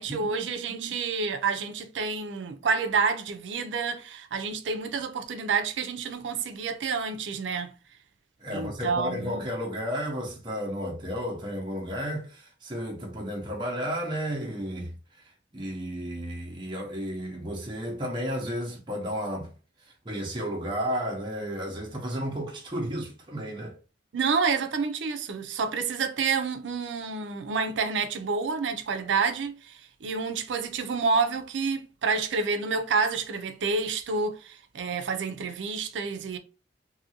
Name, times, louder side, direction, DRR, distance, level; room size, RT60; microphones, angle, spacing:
voice 1, 0.0-7.7 8.5-9.4 24.1-36.4, right 5 dB, 90° right, 0.5 m, -29 dB
voice 2, 8.4-15.2 15.5-19.5 19.8-23.8, equal, 25° right, 0.8 m, -33 dB
2.7 x 2.6 x 2.8 m
head